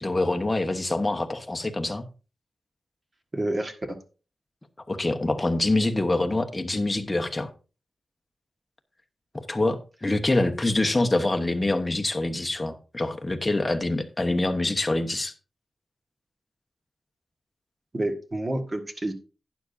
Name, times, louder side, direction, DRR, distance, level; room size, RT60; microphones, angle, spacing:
voice 1, 0.0-2.1 4.9-7.5 9.3-15.3, left 2 dB, 20° left, 1.1 m, -25 dB
voice 2, 3.3-4.0 17.9-19.1, right 1 dB, 30° right, 1.4 m, -29 dB
12.0 x 9.7 x 2.6 m
wide cardioid pair, 110°, 0 cm